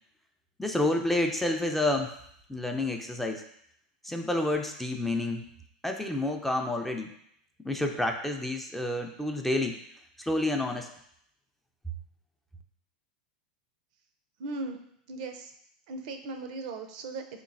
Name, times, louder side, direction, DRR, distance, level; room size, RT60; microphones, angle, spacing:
voice 1, 0.6-2.1 2.5-3.4 4.0-5.4 5.8-7.1 7.6-9.8 10.2-10.9, left 1 dB, 5° left, 3 dB, 0.3 m, -29 dB
voice 2, 14.4-14.8 15.1-15.5 15.9-17.4, right 3 dB, 65° right, 6 dB, 0.5 m, -37 dB
3.9 x 2.9 x 2.5 m, 0.69 s
hypercardioid pair, 105°, 4 cm